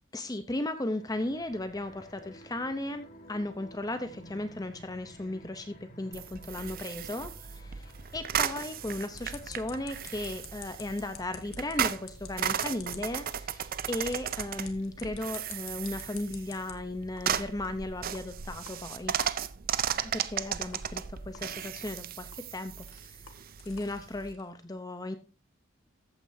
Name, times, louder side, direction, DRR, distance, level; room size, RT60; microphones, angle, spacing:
voice 1, 0.1-19.1 20.0-23.3 23.7-25.2, left 1 dB, 15° left, 9 dB, 0.7 m, -36 dB
sound 1, 1.0-11.6, equal, 40° left, 2.0 m, -54 dB
sound 2, 6.1-24.3, right 9 dB, 40° right, 0.5 m, -36 dB
sound 3, 9.1-16.7 17.2-17.3 17.6-17.7 18.1-18.2 18.7-18.8 19.2-19.3 19.7-19.8 20.2-20.3 20.7-20.8 21.3-21.4 21.9-24.5, left 7 dB, 75° left, 1.7 m, -50 dB
14.0 x 8.8 x 2.7 m, 0.31 s
head